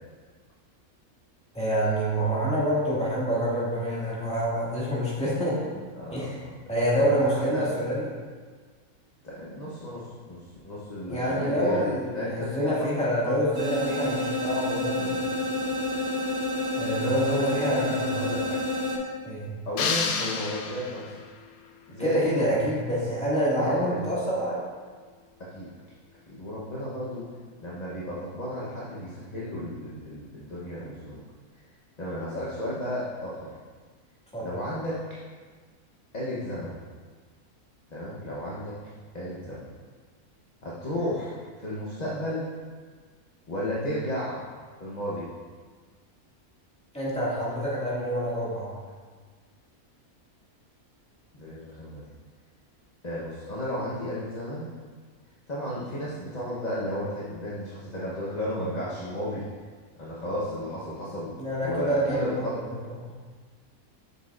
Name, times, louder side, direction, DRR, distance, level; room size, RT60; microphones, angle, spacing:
voice 1, 1.5-5.7 6.1-6.4 6.7-8.0 11.1-15.3 16.8-18.3 19.2-19.5 22.0-24.6 34.3-34.5 46.9-48.7 61.4-62.5 63.0-63.1, right 1 dB, 5° left, -8 dB, 1.8 m, -27 dB
voice 2, 6.0-6.5 7.0-7.6 9.2-13.5 16.9-18.6 19.6-21.1 21.9-22.2 23.6-24.1 25.4-25.7 26.3-27.3 27.6-31.2 32.0-33.5 34.4-35.0 36.1-36.7 37.9-38.7 39.1-39.7 40.6-42.4 43.5-44.4 44.8-45.2 51.3-52.0 53.0-54.7 55.5-59.4 60.0-61.3 61.6-62.5, left 1 dB, 35° left, -7 dB, 0.9 m, -33 dB
sound 1, 13.5-19.0, left 1 dB, 70° right, 1.9 m, -29 dB
sound 2, 19.8-21.3, left 5 dB, 85° left, 1.1 m, -29 dB
7.4 x 7.2 x 2.5 m, 1.5 s
omnidirectional pair, 1.5 m